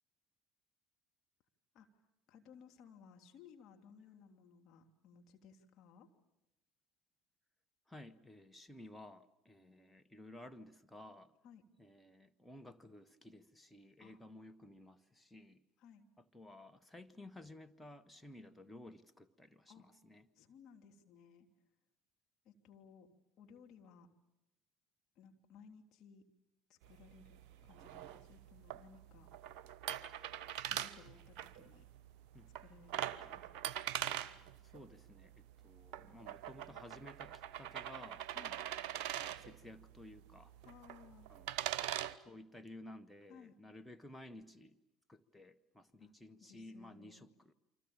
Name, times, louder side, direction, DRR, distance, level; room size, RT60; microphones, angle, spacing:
voice 1, 2.3-6.1 11.4-11.6 14.0-14.2 15.8-16.1 19.7-19.9 20.3-21.5 22.4-23.1 23.4-24.1 25.1-26.3 26.7-29.3 30.7-31.9 32.6-33.5 38.3-38.6 40.6-41.3 43.3-43.6 46.0-46.1 46.4-47.3, left 6 dB, 45° left, 3 dB, 2.9 m, -60 dB
voice 2, 7.9-11.3 11.8-15.6 16.3-20.3 32.3-32.5 34.6-38.7 39.4-40.5 41.3-41.8 42.2-44.8 45.1-47.5, left 1 dB, 5° left, 8 dB, 1.3 m, -55 dB
sound 1, 26.8-42.1, right 11 dB, 55° right, 0.9 m, -44 dB
28.5 x 25.5 x 7.2 m, 0.92 s
figure-of-eight pair, 60°, 0 cm